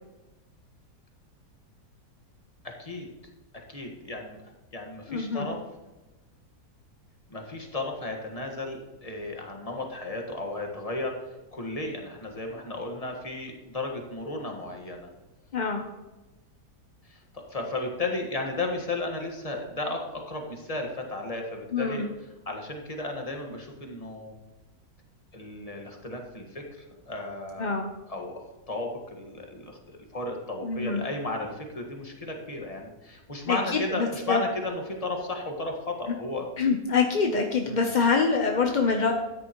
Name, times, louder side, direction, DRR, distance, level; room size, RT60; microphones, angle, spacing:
voice 1, 2.6-3.1 3.7-5.6 7.3-11.1 11.5-15.1 17.0-22.1 22.4-24.3 25.3-27.7 28.1-36.5 37.7-37.9, left 2 dB, 25° left, 2 dB, 1.5 m, -34 dB
voice 2, 5.1-5.5 15.5-15.8 21.7-22.1 27.6-27.9 30.6-31.0 33.5-34.4 36.6-39.1, left 5 dB, 40° left, 3 dB, 0.7 m, -25 dB
13.5 x 9.9 x 3.0 m, 1.1 s
omnidirectional pair, 1.7 m